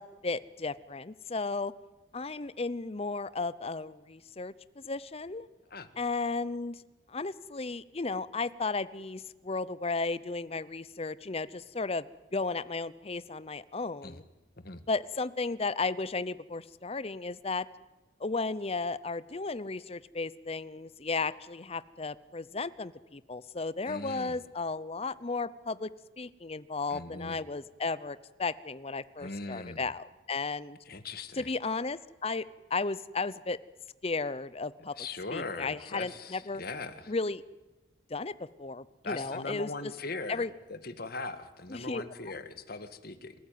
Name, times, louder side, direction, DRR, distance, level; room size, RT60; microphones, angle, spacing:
voice 1, 0.0-1.7 2.1-5.5 6.0-6.8 7.1-12.0 12.3-14.2 14.9-17.7 18.2-25.9 26.2-30.8 31.4-33.6 34.0-34.9 35.3-36.6 37.1-37.4 38.1-38.3 38.6-39.9 40.3-40.5 41.7-42.0, left 3 dB, 30° left, 17 dB, 0.7 m, -34 dB
voice 2, 23.8-24.4 26.9-27.4 29.2-29.8 30.8-31.5 35.0-37.1 39.0-43.3, left 3 dB, 50° left, 9 dB, 1.7 m, -40 dB
27.0 x 14.5 x 9.3 m, 1.1 s
head